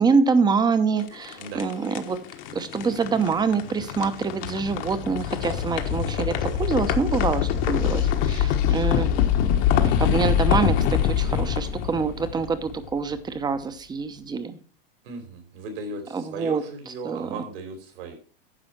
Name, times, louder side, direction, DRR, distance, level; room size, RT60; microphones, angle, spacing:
voice 1, 0.0-2.2 2.5-9.1 9.8-14.6 16.1-16.6 17.0-17.4, right 5 dB, 15° right, 12 dB, 0.9 m, -25 dB
sound 1, 1.0-13.1, left 9 dB, 45° left, 1.3 m, -24 dB
voice 2, 15.0-18.1, right 3 dB, 70° right, 4 dB, 3.3 m, -36 dB
10.0 x 6.1 x 5.9 m, 0.40 s
supercardioid pair, 135°, 29 cm